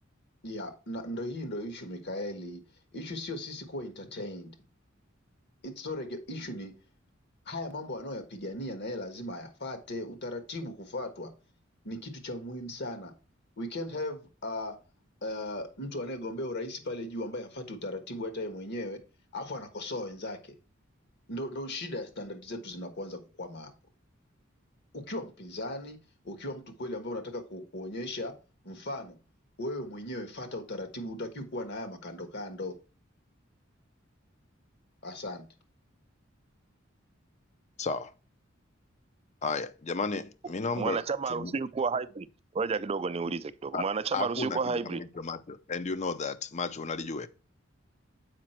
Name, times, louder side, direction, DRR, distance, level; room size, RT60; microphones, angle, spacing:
voice 1, 0.4-2.6 2.9-4.5 5.6-6.7 7.4-11.3 11.8-13.1 13.6-14.8 15.2-19.0 19.3-20.5 21.3-23.7 24.9-26.0 26.2-28.3 28.6-29.1 29.6-32.7 35.0-35.5, left 1 dB, 60° left, 1.5 m, -37 dB
voice 2, 37.8-38.1 39.4-41.0 41.3-41.6 43.7-43.9 44.1-47.3, left 4 dB, 35° left, 0.6 m, -33 dB
voice 3, 40.8-42.3 42.5-45.0, right 4 dB, 30° right, 0.4 m, -31 dB
7.4 x 5.1 x 4.4 m
head